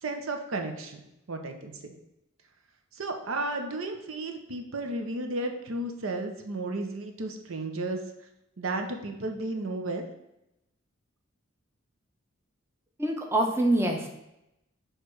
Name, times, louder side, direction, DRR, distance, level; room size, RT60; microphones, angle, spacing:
voice 1, 0.0-1.0 1.3-1.7 2.9-8.0 8.6-10.0, right 2 dB, 80° right, 5 dB, 0.7 m, -33 dB
voice 2, 13.0-14.1, right 1 dB, 10° right, 1 dB, 0.7 m, -25 dB
6.5 x 3.2 x 4.6 m, 0.86 s
head